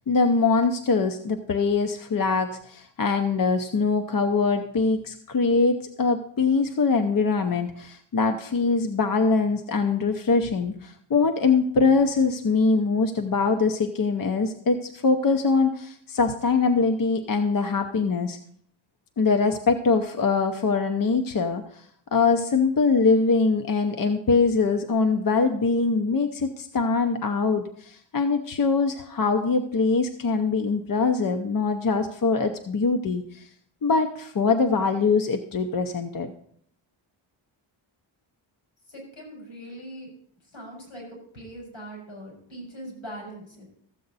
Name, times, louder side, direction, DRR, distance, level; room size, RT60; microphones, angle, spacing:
voice 1, 0.1-18.4 19.2-21.8 22.1-33.5 33.8-36.3, left 4 dB, 45° left, 6 dB, 0.7 m, -23 dB
voice 2, 38.9-40.1 40.5-43.7, right 1 dB, 80° left, -1 dB, 5.7 m, -41 dB
14.0 x 7.7 x 4.0 m, 0.63 s
wide cardioid pair, 175°, 48 cm